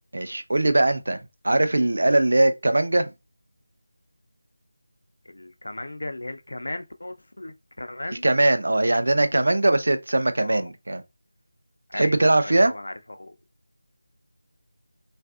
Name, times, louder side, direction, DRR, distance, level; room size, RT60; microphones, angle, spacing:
voice 1, 0.1-1.2 1.4-3.1 8.2-11.0 11.9-12.7, right 2 dB, 70° right, 0.5 m, -21 dB
voice 2, 5.2-8.2 10.4-10.7 11.9-12.2 12.4-13.4, left 1 dB, 85° left, 0.5 m, -36 dB
3.4 x 2.5 x 2.3 m
figure-of-eight pair, 175°, 0 cm